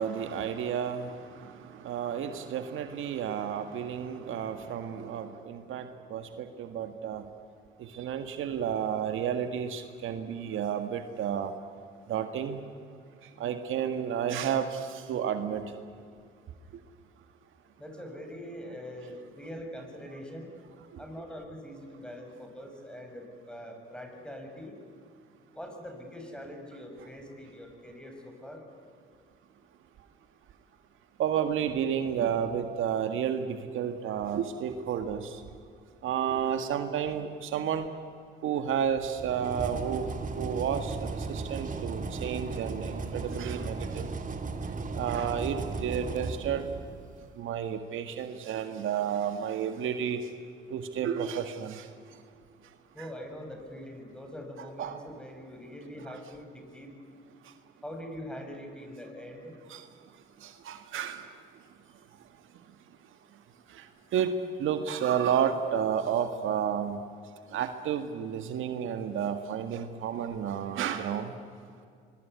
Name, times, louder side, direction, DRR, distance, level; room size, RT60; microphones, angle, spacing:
voice 1, 0.0-7.2 7.8-11.5 12.1-12.6 13.4-15.6 20.9-21.0 31.2-35.4 36.0-37.9 38.4-40.1 40.4-44.1 45.0-46.7 47.4-50.3 50.7-51.9 54.8-55.0 59.7-59.8 60.4-61.2 63.7-63.8 64.1-67.0 67.5-71.3, right 8 dB, 70° right, 8 dB, 1.8 m, -31 dB
voice 2, 17.8-20.5 21.0-24.8 25.5-28.6 52.9-56.9 57.8-59.5, equal, 5° left, 3 dB, 7.4 m, -43 dB
sound 1, 39.2-47.1, right 3 dB, 40° right, 2.6 m, -36 dB
24.5 x 23.0 x 9.7 m, 2.2 s
supercardioid pair, 65°, 21 cm